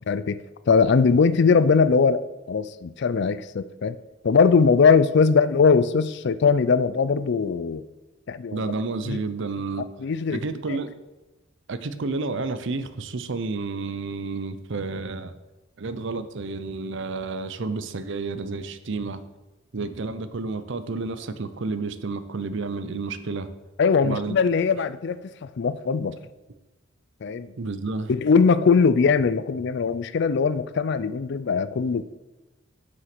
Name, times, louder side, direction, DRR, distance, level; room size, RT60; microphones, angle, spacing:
voice 1, 0.1-2.2 2.5-4.0 4.2-7.8 8.3-8.6 9.1-9.2 10.0-10.4 10.7-10.8 23.8-26.1 27.2-27.5 28.1-32.0, left 5 dB, 60° left, 14 dB, 0.4 m, -20 dB
voice 2, 8.5-9.9 10.3-10.9 11.7-15.3 15.8-19.2 19.7-23.5 24.0-24.3 27.6-28.1, right 3 dB, 65° right, 12 dB, 0.6 m, -30 dB
7.7 x 6.3 x 6.0 m, 1.1 s
head